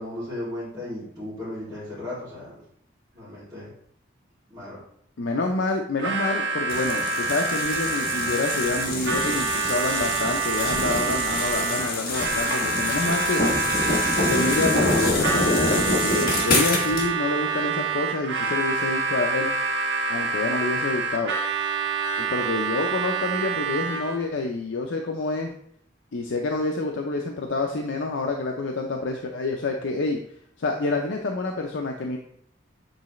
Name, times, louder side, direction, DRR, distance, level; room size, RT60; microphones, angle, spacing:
voice 1, 0.0-2.6 3.1-3.7 4.5-4.8, left 1 dB, 15° right, -14 dB, 2.5 m, -35 dB
voice 2, 5.2-13.4 14.3-19.5 20.1-21.3 22.2-25.5 26.1-30.2 30.6-32.2, left 3 dB, 80° left, 2 dB, 0.6 m, -27 dB
Harmonica, 6.0-24.2, right 4 dB, 65° right, 0.7 m, -27 dB
sound 1, 6.7-17.1, left 2 dB, 50° left, 1.5 m, -26 dB
7.9 x 4.0 x 3.1 m, 0.67 s
head